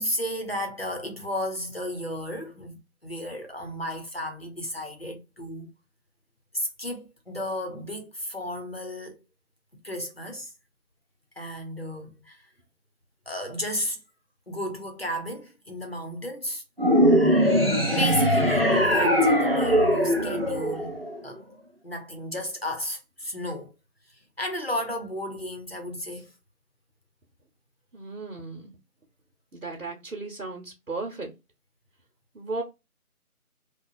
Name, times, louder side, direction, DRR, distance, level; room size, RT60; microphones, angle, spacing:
voice 1, 0.0-5.7 6.5-9.2 9.8-10.5 11.4-12.4 13.3-14.0 14.5-16.6 17.9-21.0 21.2-21.4 21.8-23.7 24.4-26.3, equal, 40° left, 0.8 m, -33 dB
sound 1, 16.8-21.3, equal, 40° right, 0.6 m, -21 dB
voice 2, 27.9-28.7 29.5-31.3 32.3-32.6, right 3 dB, 70° right, 1.0 m, -35 dB
2.8 x 2.2 x 2.6 m
figure-of-eight pair, 170°, 44 cm